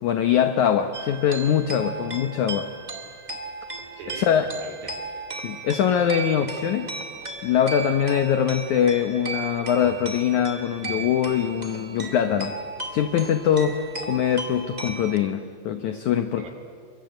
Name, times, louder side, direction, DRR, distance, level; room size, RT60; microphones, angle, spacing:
voice 1, 0.0-2.7 4.1-4.5 5.4-6.9 7.4-12.6 12.9-13.8 14.1-16.5, left 9 dB, 80° left, 8 dB, 1.7 m, -23 dB
sound 1, 0.9-15.2, right 3 dB, 50° right, 0.5 m, -36 dB
voice 2, 3.8-5.3 16.3-16.5, right 5 dB, 65° right, 5 dB, 4.8 m, -41 dB
29.5 x 24.0 x 8.0 m, 2.1 s
omnidirectional pair, 4.8 m